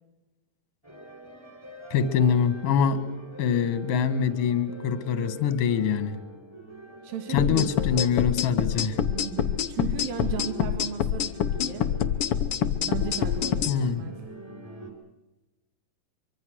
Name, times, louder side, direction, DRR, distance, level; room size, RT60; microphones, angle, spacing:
sound 1, 0.8-14.9, equal, 5° right, 3.8 m, -43 dB
voice 1, 1.9-3.0 3.4-6.2 7.3-9.0 13.7-14.0, left 7 dB, 50° left, 11 dB, 2.2 m, -24 dB
voice 2, 7.0-8.1 9.1-11.9 12.8-14.2, right 8 dB, 85° right, 6 dB, 3.5 m, -36 dB
sound 2, 7.4-13.7, left 9 dB, 75° left, 1.2 m, -26 dB
24.5 x 24.0 x 6.4 m, 1.0 s
omnidirectional pair, 4.1 m